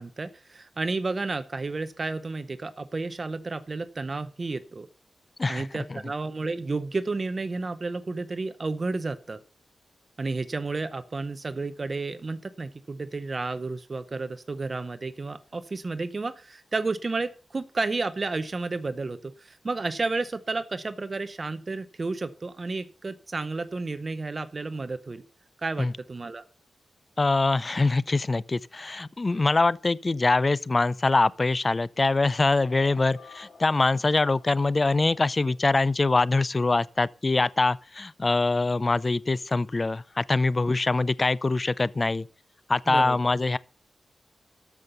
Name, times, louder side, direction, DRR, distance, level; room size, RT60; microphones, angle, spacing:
voice 1, 0.0-4.9 5.5-9.4 10.2-25.2 25.6-26.4 42.9-43.2, right 3 dB, 40° right, 0.7 m, -31 dB
voice 2, 5.4-5.8 25.8-25.9 27.2-42.3 42.7-43.6, left 3 dB, 30° left, 0.5 m, -24 dB
sound 1, 32.6-36.5, left 4 dB, 90° left, 2.9 m, -52 dB
13.5 x 5.7 x 6.6 m
wide cardioid pair, 90°, 0 cm